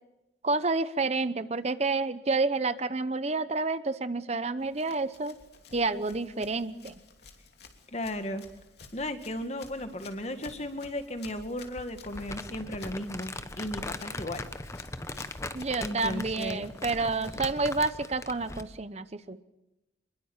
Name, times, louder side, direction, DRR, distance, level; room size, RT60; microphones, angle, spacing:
voice 1, 0.4-5.3 5.7-6.9 15.5-19.4, right 3 dB, 35° right, 13 dB, 0.8 m, -29 dB
Run, 4.6-17.8, left 3 dB, 60° left, 3.1 m, -52 dB
voice 2, 7.9-8.4 8.9-14.5 15.8-16.7, left 1 dB, 35° left, 8 dB, 2.0 m, -35 dB
Crumpling crinkling, 12.1-18.8, left 2 dB, 15° left, 1.1 m, -40 dB
26.5 x 22.0 x 7.3 m, 0.94 s
head